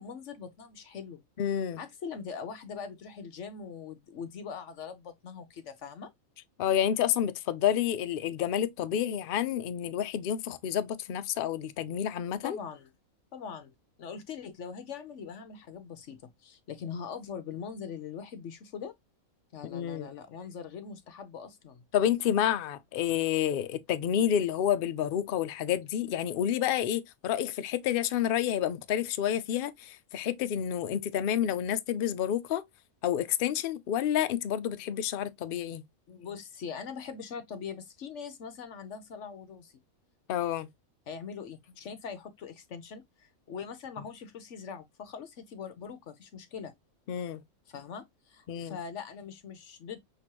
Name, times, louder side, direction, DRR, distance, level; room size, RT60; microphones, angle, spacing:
voice 1, 0.0-1.2 1.8-6.1 12.4-12.9 13.3-13.7 14.0-18.9 19.5-21.8 36.1-39.7 41.1-46.7 47.7-50.0, left 6 dB, 60° left, 0.9 m, -42 dB
voice 2, 1.4-1.8 6.6-12.6 19.7-20.1 21.9-32.6 33.0-35.8 40.3-40.7 47.1-47.4 48.5-48.8, left 10 dB, 90° left, 0.4 m, -29 dB
5.9 x 3.0 x 2.9 m
omnidirectional pair, 1.5 m